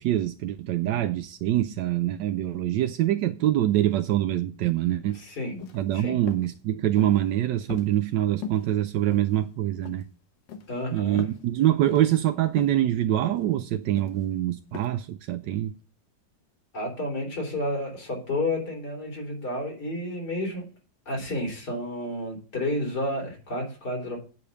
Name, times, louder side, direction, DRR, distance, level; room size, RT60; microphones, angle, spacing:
voice 1, 0.0-5.2 5.7-10.0 10.9-15.7, right 13 dB, 80° right, 1.3 m, -25 dB
voice 2, 5.1-5.6 5.9-6.2 10.7-11.2 16.7-20.6 21.1-24.2, left 1 dB, 60° left, 3.8 m, -31 dB
sound 1, 5.5-5.8 6.3-6.5 7.0-7.3 7.7-8.2 8.4-8.7 9.1-9.6 9.8-10.0 10.5-10.7 11.2-11.4 11.9-12.1 12.6-12.8 13.2-13.5 14.0-14.2 14.7-14.9, left 6 dB, 80° left, 1.8 m, -39 dB
9.2 x 5.1 x 6.8 m
omnidirectional pair, 1.9 m